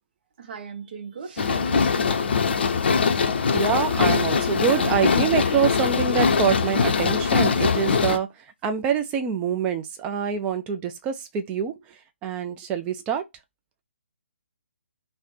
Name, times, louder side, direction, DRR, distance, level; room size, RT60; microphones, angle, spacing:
voice 1, 0.4-2.6, right 5 dB, 45° right, 0.7 m, -39 dB
sound 1, 1.4-8.2, left 5 dB, 50° left, 0.5 m, -22 dB
voice 2, 3.5-8.3 8.6-11.7 12.2-13.2, right 7 dB, 15° right, 0.3 m, -25 dB
3.1 x 2.1 x 4.1 m
figure-of-eight pair, 140°, 7 cm